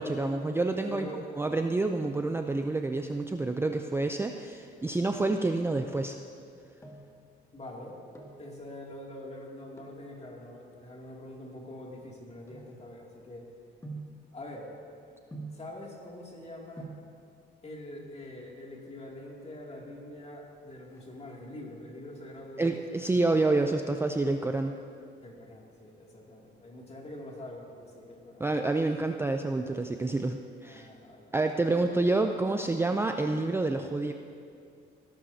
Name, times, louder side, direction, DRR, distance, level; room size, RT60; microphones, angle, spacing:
voice 1, 0.0-1.1 1.4-6.2 22.6-24.7 28.4-30.9 31.3-34.1, right 2 dB, 10° right, 5 dB, 0.4 m, -28 dB
voice 2, 0.8-1.2 7.5-8.0 8.4-13.5 14.3-14.7 15.5-16.9 17.6-23.2 25.2-28.5 30.6-31.4, left 1 dB, 35° left, -2 dB, 2.5 m, -44 dB
sound 1, 6.8-7.2 7.9-8.5 9.7-10.1 10.8-13.2 13.8-14.2 15.3-15.7 16.5-16.6 16.8-17.1 18.2-18.8 19.1-19.2 19.4-19.5 19.9-20.3 20.6-21.7 22.1-22.5 22.9-24.0 24.3-24.4, right 3 dB, 15° left, 1.9 m, -47 dB
17.5 x 11.5 x 2.8 m, 2.4 s
cardioid pair, 90°, 20 cm